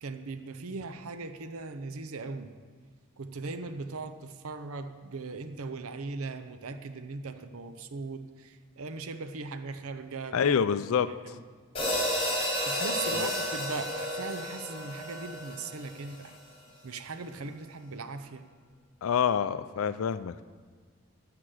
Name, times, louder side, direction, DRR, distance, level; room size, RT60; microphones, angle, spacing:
voice 1, 0.0-2.5 3.2-10.6 11.0-11.4 12.7-16.3 16.8-18.5, right 3 dB, 80° right, 9 dB, 0.7 m, -39 dB
voice 2, 10.3-11.4 13.1-13.3 19.0-20.4, left 7 dB, 70° left, 12 dB, 0.4 m, -27 dB
sound 1, 11.7-16.1, equal, 25° left, 4.4 m, -31 dB
13.0 x 6.0 x 7.7 m, 1.5 s
head